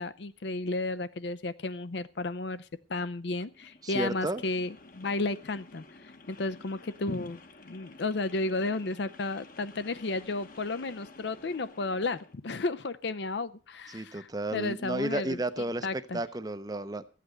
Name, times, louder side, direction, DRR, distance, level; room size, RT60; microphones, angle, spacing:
voice 1, 0.0-5.8 6.3-16.2, left 3 dB, 65° left, 14 dB, 0.6 m, -33 dB
sound 1, 3.5-12.4, left 3 dB, 45° left, 1.1 m, -52 dB
voice 2, 3.8-4.4 13.9-17.0, right 2 dB, 20° right, 13 dB, 0.6 m, -32 dB
14.0 x 8.5 x 6.4 m, 0.38 s
head